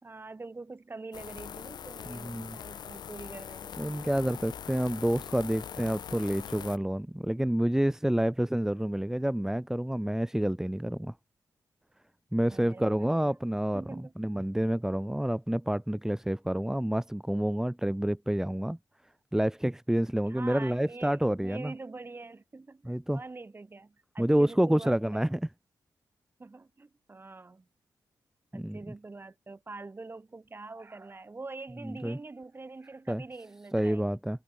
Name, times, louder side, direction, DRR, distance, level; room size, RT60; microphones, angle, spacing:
voice 1, 0.0-4.0 12.5-13.3 13.7-14.1 20.2-25.3 26.4-27.7 28.5-34.1, right 3 dB, 30° right, 6.1 m, -45 dB
sound 1, 1.1-6.8, left 9 dB, 80° left, 1.6 m, -42 dB
voice 2, 2.1-2.6 3.8-11.1 12.3-18.8 19.3-21.7 22.8-23.2 24.2-25.4 28.5-28.8 31.8-32.2 33.1-33.2 33.7-34.4, right 1 dB, 5° right, 2.0 m, -28 dB
cardioid pair, 75°, 7 cm